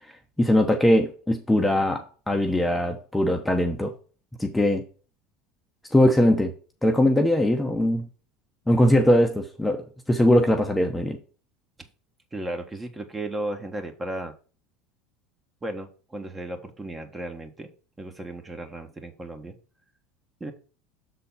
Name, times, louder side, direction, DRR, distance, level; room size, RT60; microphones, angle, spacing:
voice 1, 0.4-3.9 4.4-4.8 5.9-6.5 6.8-8.1 8.7-11.2, left 1 dB, 10° left, 3 dB, 1.0 m, -21 dB
voice 2, 12.3-14.3 15.6-17.7 18.0-19.5 20.4-20.5, right 1 dB, 15° right, 6 dB, 1.5 m, -35 dB
6.8 x 4.1 x 5.7 m, 0.37 s
hypercardioid pair, 90°, 0 cm